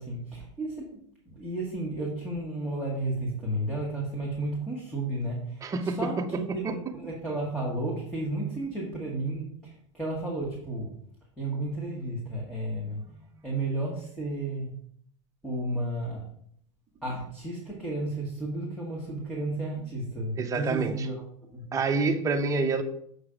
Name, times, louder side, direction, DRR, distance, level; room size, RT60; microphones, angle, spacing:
voice 1, 0.0-10.9 11.4-13.0 13.4-14.8 15.4-16.3 17.0-21.2 21.5-21.7, right 1 dB, 5° left, -5 dB, 1.5 m, -33 dB
voice 2, 5.6-6.1 6.6-6.7 20.4-21.1 21.7-22.8, right 4 dB, 20° right, 6 dB, 0.7 m, -27 dB
6.8 x 3.1 x 5.0 m, 0.66 s
hypercardioid pair, 115°, 16 cm